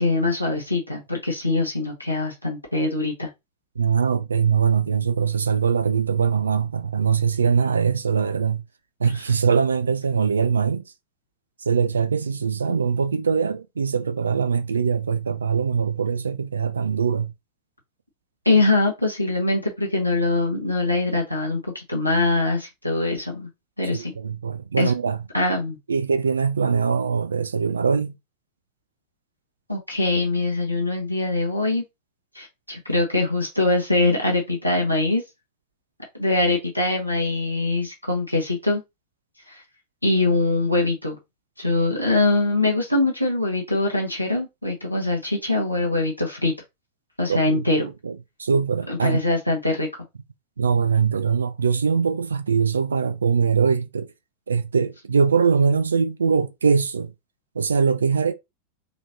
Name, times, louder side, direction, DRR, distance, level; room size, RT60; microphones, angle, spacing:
voice 1, 0.0-3.3 18.4-23.5 23.8-24.1 24.8-24.9 25.3-25.8 29.7-31.8 32.3-35.2 36.2-38.8 39.5-39.6 40.0-41.2 41.6-46.5 47.2-47.9 48.9-49.9, left 2 dB, 90° left, 1.2 m, -23 dB
voice 2, 3.8-8.6 9.0-10.8 11.7-17.3 23.9-25.2 25.9-28.1 47.3-49.2 50.6-54.1 54.5-57.1 57.6-58.3, right 6 dB, 70° right, 0.5 m, -22 dB
4.1 x 3.1 x 2.7 m
figure-of-eight pair, 90°, 0 cm